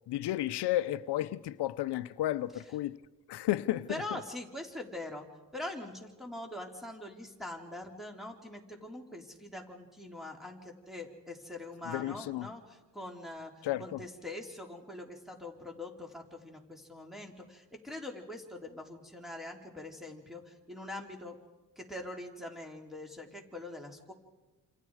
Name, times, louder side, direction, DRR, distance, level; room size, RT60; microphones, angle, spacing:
voice 1, 0.1-3.0 3.3-4.2 11.8-12.5 13.6-14.0, left 14 dB, 85° left, 0.8 m, -33 dB
voice 2, 3.9-5.3 5.5-13.5 13.8-21.4 21.8-24.1, left 1 dB, ahead, 3.7 m, -43 dB
28.5 x 28.0 x 4.9 m
cardioid pair, 120°, 40 cm